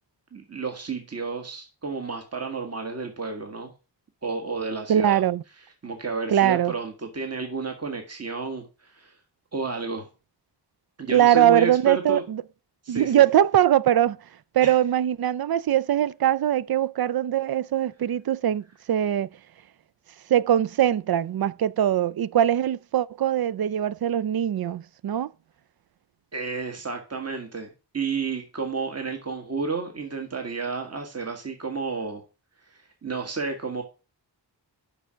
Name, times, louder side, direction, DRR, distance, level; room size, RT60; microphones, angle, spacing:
voice 1, 0.3-3.7 4.2-5.2 5.8-9.1 9.5-10.1 11.0-12.2 12.8-13.1 14.6-14.7 26.3-32.2 33.0-33.8, right 4 dB, 35° right, 1.5 m, -31 dB
voice 2, 4.9-5.4 6.3-6.7 11.1-12.4 12.9-14.2 14.5-19.3 20.3-25.3, right 11 dB, 60° right, 0.5 m, -22 dB
6.8 x 5.7 x 6.2 m
wide cardioid pair, 105°, 42 cm